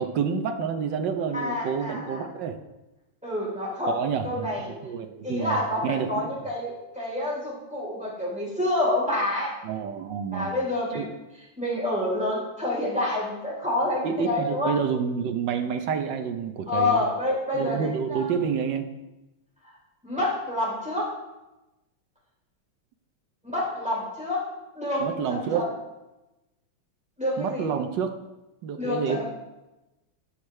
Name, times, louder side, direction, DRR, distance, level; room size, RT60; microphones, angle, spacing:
voice 1, 0.0-2.6 3.9-6.3 9.6-10.5 10.9-11.1 14.0-17.1 17.5-18.9 25.0-25.7 27.4-28.2 28.6-29.2, right 6 dB, 65° right, 7 dB, 1.3 m, -28 dB
voice 2, 1.3-2.3 3.2-4.0 4.2-4.7 5.2-9.5 10.3-11.0 11.6-14.8 16.7-18.3 20.0-21.1 23.5-24.4 24.8-25.7 27.2-27.7 28.8-29.2, left 1 dB, 5° right, -6 dB, 3.5 m, -28 dB
15.0 x 6.4 x 3.2 m, 1.0 s
omnidirectional pair, 2.3 m